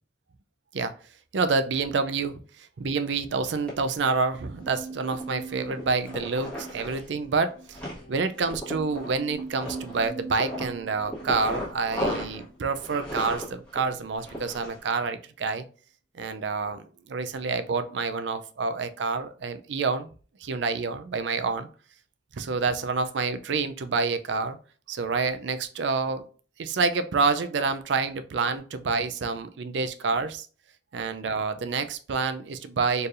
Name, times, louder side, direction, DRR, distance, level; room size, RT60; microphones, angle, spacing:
voice 1, 1.3-7.8 8.1-15.6 16.2-20.1 20.4-21.7 22.3-24.6 24.9-26.2 26.6-30.5 30.9-33.1, right 4 dB, 70° right, 10 dB, 0.4 m, -28 dB
sound 1, 3.4-3.7 4.6-5.3 5.6-7.1 7.5-8.0 8.4-10.1 10.4-14.9, equal, 5° left, 1.4 m, -36 dB
sound 2, 4.3-13.6 13.9-14.0, right 4 dB, 35° left, 0.7 m, -43 dB
4.4 x 3.3 x 2.5 m, 0.39 s
head